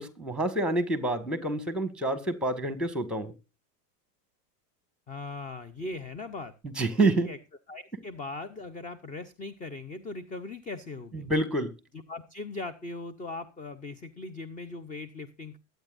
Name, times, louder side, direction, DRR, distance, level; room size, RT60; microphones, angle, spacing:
voice 1, 0.0-3.3 6.6-7.3 11.1-11.7, right 2 dB, ahead, 11 dB, 1.9 m, -28 dB
voice 2, 5.1-6.5 7.2-7.4 7.7-11.3 11.9-15.6, left 2 dB, 15° left, 15 dB, 0.8 m, -39 dB
22.5 x 9.1 x 2.6 m, 0.29 s
supercardioid pair, 135°, 47 cm